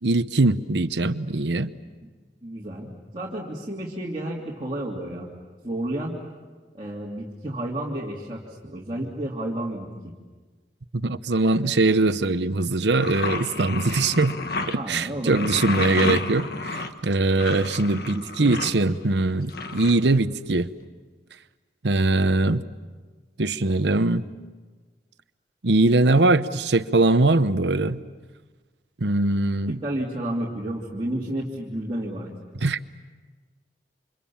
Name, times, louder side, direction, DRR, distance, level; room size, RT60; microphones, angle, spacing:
voice 1, 0.0-1.7 10.9-14.4 14.7-20.7 21.8-22.7 23.4-24.2 25.6-28.0 29.0-29.8 32.6-32.9, right 2 dB, 70° right, 12 dB, 0.9 m, -22 dB
voice 2, 2.4-2.9 3.1-5.3 5.6-6.2 6.7-9.9 14.7-15.5 18.1-18.5 29.7-32.3, right 1 dB, 25° right, -4 dB, 2.8 m, -31 dB
sound 1, 13.0-14.8 15.3-18.7 19.5-20.5, left 3 dB, 60° left, 1.5 m, -31 dB
29.5 x 26.5 x 7.2 m, 1.4 s
head